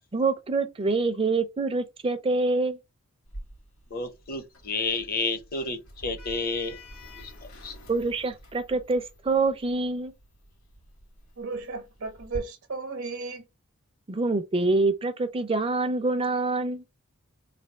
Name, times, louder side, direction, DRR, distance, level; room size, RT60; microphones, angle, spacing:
voice 1, 0.1-2.8 7.9-10.1 14.1-16.8, right 3 dB, 25° right, 0.4 m, -26 dB
Sliding door, 3.3-12.4, equal, 85° left, 1.7 m, -47 dB
voice 2, 3.9-6.8 7.2-7.8, left 3 dB, 40° left, 0.6 m, -31 dB
voice 3, 11.4-13.4, right 4 dB, 70° right, 0.8 m, -34 dB
3.3 x 2.3 x 4.3 m
head